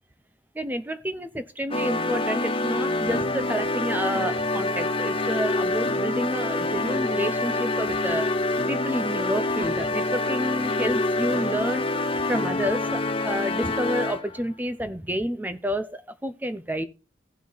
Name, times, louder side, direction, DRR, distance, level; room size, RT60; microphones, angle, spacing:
voice 1, 0.5-11.9 12.3-16.8, equal, 10° right, 0.7 m, -29 dB
sound 1, 1.7-14.4, left 2 dB, 30° left, 0.6 m, -26 dB
15.5 x 6.0 x 4.0 m
head